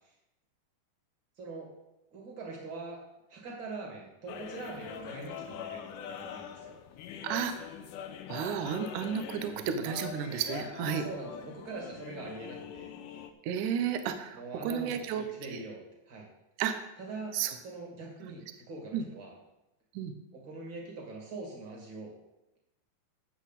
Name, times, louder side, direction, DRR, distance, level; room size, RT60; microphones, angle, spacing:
voice 1, 1.4-1.7 2.1-3.0 3.3-6.8 9.5-9.7 10.9-12.9 14.3-15.8 16.1-16.3 17.0-17.4 17.6-19.3 20.3-22.1, right 3 dB, 35° right, 0 dB, 2.5 m, -43 dB
sound 1, 4.3-13.3, left 8 dB, 75° left, 1.9 m, -43 dB
voice 2, 7.2-7.7 8.3-11.1 13.4-15.2 15.5-15.6 16.6-16.8 17.3-17.5 18.2-18.3 18.9-19.0 20.0-20.1, right 8 dB, 70° right, 8 dB, 2.1 m, -32 dB
12.0 x 8.0 x 4.1 m, 0.90 s
omnidirectional pair, 4.3 m